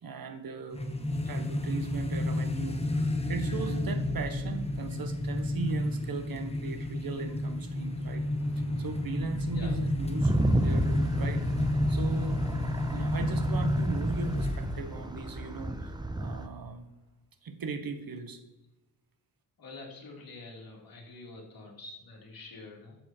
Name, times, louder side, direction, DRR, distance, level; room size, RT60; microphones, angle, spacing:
voice 1, 0.0-8.2 8.8-10.3 10.6-12.4 12.9-16.9 17.4-18.4, right 4 dB, 55° right, 7 dB, 1.6 m, -38 dB
sound 1, 0.7-15.0, left 1 dB, 15° left, 1.3 m, -31 dB
sound 2, 5.8-14.3 14.7-14.9 15.1-15.2 15.5-15.8, right 1 dB, 40° right, 4.6 m, -51 dB
sound 3, 10.2-16.5, right 1 dB, 10° right, 0.9 m, -31 dB
voice 2, 19.6-23.0, left 3 dB, 60° left, -2 dB, 3.5 m, -46 dB
12.5 x 7.6 x 4.6 m, 0.97 s
cardioid pair, 100°, 40 cm